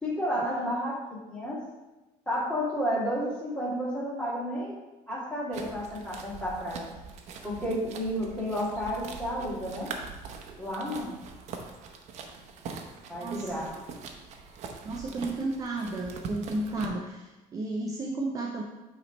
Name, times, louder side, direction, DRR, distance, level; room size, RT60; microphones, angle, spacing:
voice 1, 0.0-1.0 1.3-1.6 2.3-4.8 5.1-6.9 7.4-9.9 10.6-11.2 13.1-13.7, equal, 5° left, -7 dB, 2.2 m, -31 dB
sound 1, 5.5-16.9, right 5 dB, 55° right, 0.8 m, -43 dB
voice 2, 13.1-13.8 14.8-18.6, right 2 dB, 25° right, 0 dB, 0.5 m, -33 dB
8.7 x 3.2 x 4.1 m, 1.1 s
cardioid pair, 160°, 13 cm